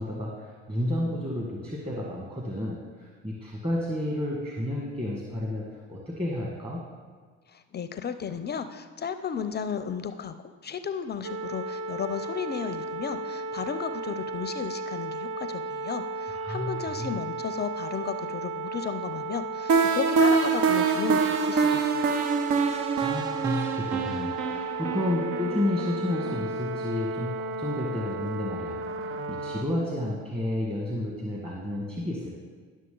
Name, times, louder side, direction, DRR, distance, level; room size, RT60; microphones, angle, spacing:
voice 1, 0.0-6.8 16.3-17.1 22.6-32.3, left 1 dB, 20° right, -2 dB, 1.6 m, -31 dB
voice 2, 7.5-10.3 10.6-22.1, left 7 dB, 30° left, 11 dB, 0.5 m, -34 dB
sound 1, 11.2-29.6, right 3 dB, 45° right, 0.6 m, -34 dB
sound 2, 19.7-26.5, right 5 dB, 70° right, 0.8 m, -25 dB
11.0 x 6.3 x 3.8 m, 1.5 s
supercardioid pair, 70°, 32 cm